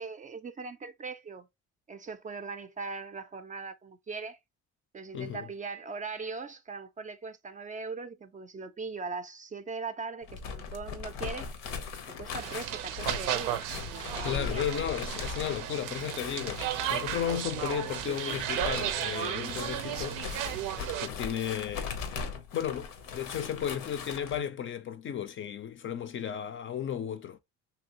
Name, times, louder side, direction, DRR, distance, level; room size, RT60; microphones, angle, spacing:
voice 1, 0.0-1.5 1.9-4.4 4.9-11.5 12.1-14.7, right 4 dB, 25° right, 0.4 m, -40 dB
voice 2, 5.1-5.5 14.2-20.2 21.0-21.9 22.5-27.4, left 9 dB, 40° left, 0.4 m, -34 dB
sound 1, 10.2-24.4, left 6 dB, 80° left, 0.7 m, -39 dB
sound 2, 12.4-21.1, right 11 dB, 90° right, 0.5 m, -34 dB
2.9 x 2.7 x 2.8 m
cardioid pair, 90°, 31 cm